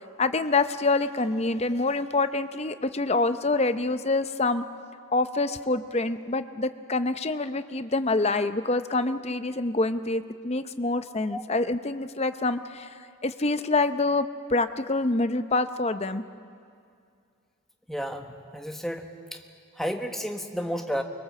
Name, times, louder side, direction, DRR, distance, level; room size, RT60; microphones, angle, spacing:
voice 1, 0.2-4.6 5.1-12.9 13.2-16.2, left 3 dB, 30° left, 11 dB, 0.6 m, -26 dB
voice 2, 17.9-19.0 19.3-19.4 19.8-21.0, equal, ahead, 4 dB, 1.2 m, -31 dB
24.0 x 22.0 x 7.7 m, 2.3 s
head